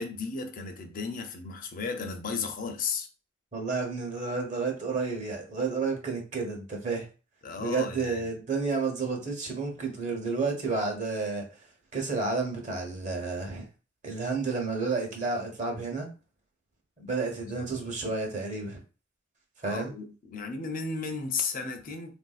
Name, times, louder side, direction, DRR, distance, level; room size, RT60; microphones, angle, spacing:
voice 1, 0.0-3.1 7.4-8.3 17.5-17.9 19.6-22.2, left 5 dB, 45° left, 0.6 m, -34 dB
voice 2, 3.5-7.1 7.6-11.5 11.9-13.7 14.0-16.1 17.0-18.8 19.6-19.9, right 4 dB, 40° right, 0.9 m, -31 dB
3.5 x 2.6 x 2.4 m
head